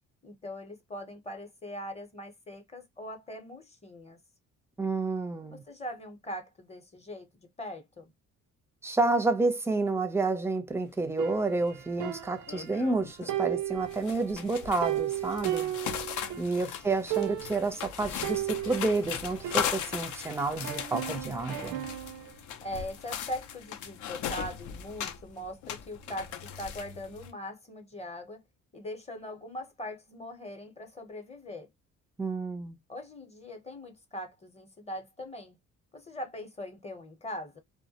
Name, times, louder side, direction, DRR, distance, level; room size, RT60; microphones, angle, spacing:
voice 1, 0.2-4.2 5.5-8.1 16.2-16.5 22.6-28.4 28.7-31.7 32.9-35.6 35.9-37.6, left 1 dB, 20° left, 0.7 m, -41 dB
voice 2, 4.8-5.6 8.8-15.7 16.4-21.9 32.2-32.8, right 3 dB, 10° right, 0.4 m, -30 dB
sound 1, 11.2-12.9 13.3-16.6 16.8-16.9 17.1-17.7 18.2-20.2 20.6-22.3, right 14 dB, 80° right, 0.4 m, -35 dB
sound 2, 11.3-11.4 11.8-12.0 12.5-13.4 13.7-27.3, left 9 dB, 75° left, 0.5 m, -38 dB
2.2 x 2.1 x 2.7 m
cardioid pair, 90°, 30 cm